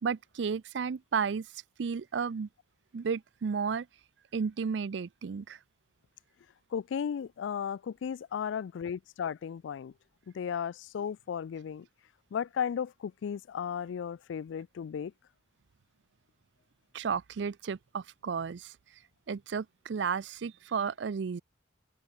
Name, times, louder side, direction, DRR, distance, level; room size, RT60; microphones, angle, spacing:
voice 1, 0.0-2.5 2.9-3.9 4.3-5.6 16.9-18.8 19.3-21.4, right 6 dB, 75° right, 0.4 m, -33 dB
voice 2, 6.7-9.9 10.3-11.9 12.3-15.1, left 7 dB, 90° left, 0.3 m, -35 dB
open air
head